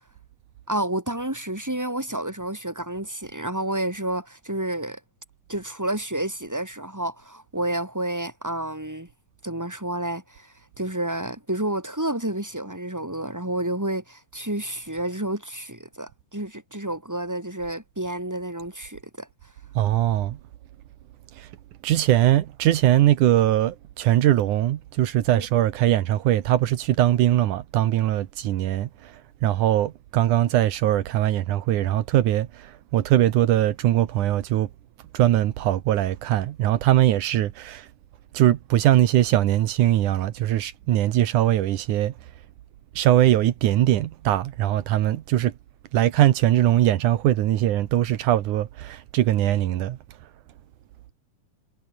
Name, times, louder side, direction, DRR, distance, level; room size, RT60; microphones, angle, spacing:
voice 1, 0.7-5.0 5.5-9.1 9.4-19.3 25.3-25.4, right 1 dB, 5° right, 5.1 m, -30 dB
voice 2, 19.8-20.4 21.4-21.5 21.8-34.7 35.1-37.9 38.3-42.1 43.0-45.5 45.9-50.0, right 13 dB, 80° right, 2.6 m, -21 dB
omnidirectional pair, 3.5 m